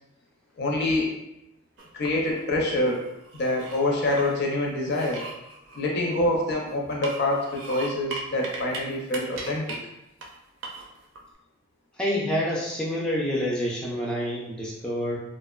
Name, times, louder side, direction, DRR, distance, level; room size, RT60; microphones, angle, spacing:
voice 1, 0.6-1.1 1.9-3.0 3.3-5.3 5.7-9.8, left 1 dB, 55° left, -1 dB, 0.5 m, -26 dB
sound 1, 1.8-2.4 2.9-4.3 4.8-6.5 6.9-8.8 9.1-9.8 10.2-10.3 10.6-11.2, right 3 dB, 75° right, 0.5 m, -38 dB
voice 2, 12.0-15.2, equal, 5° left, -5 dB, 0.3 m, -27 dB
2.6 x 2.0 x 2.3 m, 0.88 s
head